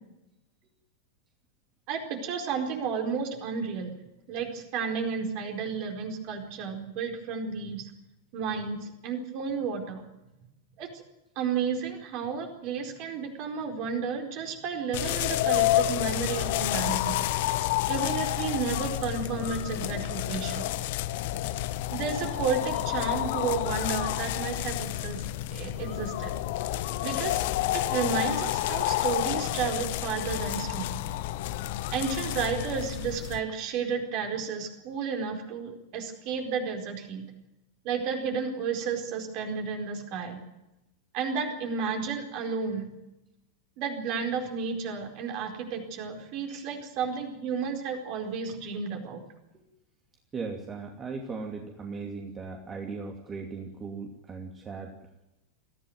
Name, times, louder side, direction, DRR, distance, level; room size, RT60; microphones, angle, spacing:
voice 1, 1.9-3.9 4.3-7.9 8.3-10.0 10.8-11.0 11.4-17.3 17.9-20.7 21.9-25.2 25.5-26.4 27.0-27.4 27.7-31.0 31.9-37.2 37.8-40.4 41.1-42.9 43.8-49.2, right 5 dB, 40° right, 4 dB, 4.6 m, -32 dB
sound 1, 14.9-33.4, left 14 dB, 50° left, 1.0 m, -29 dB
voice 2, 50.3-54.9, right 4 dB, 20° right, 2 dB, 2.7 m, -38 dB
22.5 x 15.5 x 9.2 m, 0.93 s
figure-of-eight pair, 90°, 0 cm